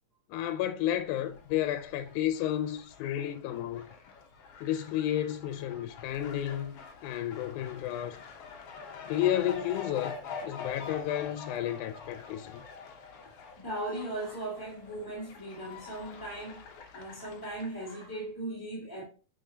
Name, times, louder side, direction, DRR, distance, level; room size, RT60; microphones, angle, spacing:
voice 1, 0.3-3.9 4.6-8.2 9.1-12.7, left 12 dB, 90° left, 2.0 m, -32 dB
Fowl, 0.8-18.2, left 5 dB, 60° left, 1.7 m, -46 dB
voice 2, 13.2-16.6 16.9-19.0, right 1 dB, 10° left, 1.4 m, -38 dB
7.5 x 5.3 x 2.8 m
omnidirectional pair, 3.4 m